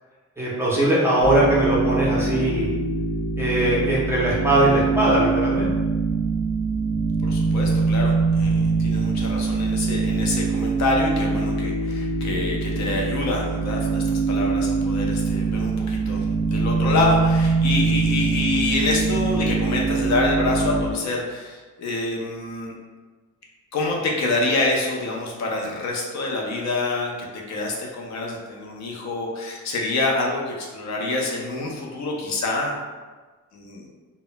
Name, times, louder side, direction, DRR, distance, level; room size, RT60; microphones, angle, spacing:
voice 1, 0.4-2.7 3.4-5.7, right 1 dB, 10° right, -8 dB, 0.4 m, -20 dB
sound 1, 1.2-20.8, right 4 dB, 80° left, 0.9 m, -23 dB
voice 2, 7.2-16.2 16.5-22.8 23.7-32.8 33.5-33.9, left 2 dB, 55° left, -1 dB, 0.5 m, -26 dB
2.1 x 2.0 x 3.8 m, 1.4 s
cardioid pair, 175°, 33 cm